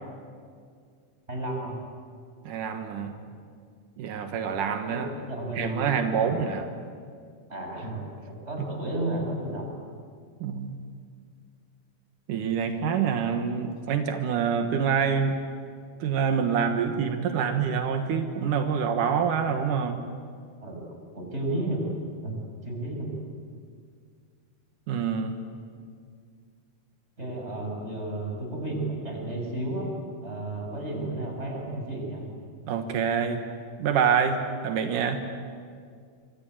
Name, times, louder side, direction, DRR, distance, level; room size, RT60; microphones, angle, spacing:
voice 1, 1.3-1.7 3.2-3.3 4.9-6.4 7.5-9.7 20.6-20.8 21.1-21.8 22.2-22.3 22.6-23.1 27.2-29.9 30.2-32.2, right 1 dB, 20° right, 1 dB, 6.5 m, -32 dB
voice 2, 2.4-3.2 4.0-5.1 5.5-6.7 10.4-10.7 12.3-15.4 16.0-20.0 24.9-25.3 32.7-33.5 33.8-35.2, right 7 dB, 85° right, 6 dB, 3.0 m, -26 dB
26.5 x 24.5 x 9.1 m, 2.1 s
omnidirectional pair, 3.6 m